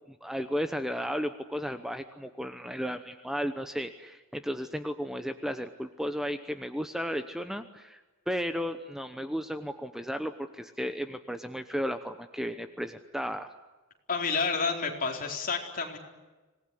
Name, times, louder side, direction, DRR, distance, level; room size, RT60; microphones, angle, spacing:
voice 1, 0.2-13.5, equal, ahead, 8 dB, 1.0 m, -34 dB
voice 2, 14.1-16.0, left 4 dB, 40° left, 2 dB, 4.3 m, -30 dB
26.5 x 19.0 x 10.0 m, 1.2 s
head